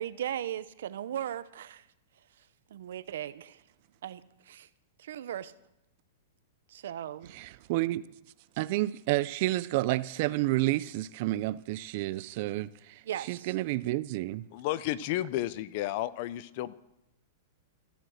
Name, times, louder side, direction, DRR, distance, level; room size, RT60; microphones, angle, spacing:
voice 1, 0.0-1.9 2.4-2.5 2.7-3.6 4.0-4.7 5.0-5.5 6.7-7.3 13.0-13.5, right 11 dB, 70° right, 0.8 m, -37 dB
voice 2, 7.3-8.0 8.6-14.5, right 17 dB, 40° right, 0.4 m, -30 dB
voice 3, 14.5-16.7, left 14 dB, 40° left, 0.6 m, -32 dB
14.0 x 11.5 x 6.4 m
supercardioid pair, 165°, 0 cm